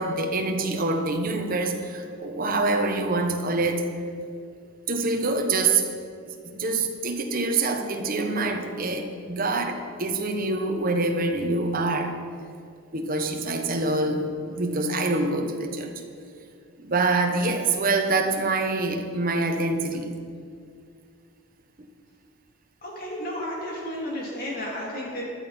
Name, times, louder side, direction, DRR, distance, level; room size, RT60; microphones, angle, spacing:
voice 1, 0.0-3.8 4.9-5.9 6.4-12.1 12.9-15.9 16.8-20.1, right 3 dB, 40° right, 4 dB, 1.1 m, -25 dB
voice 2, 22.8-25.2, equal, 40° left, -3 dB, 3.0 m, -32 dB
14.5 x 11.0 x 4.4 m, 2.3 s
head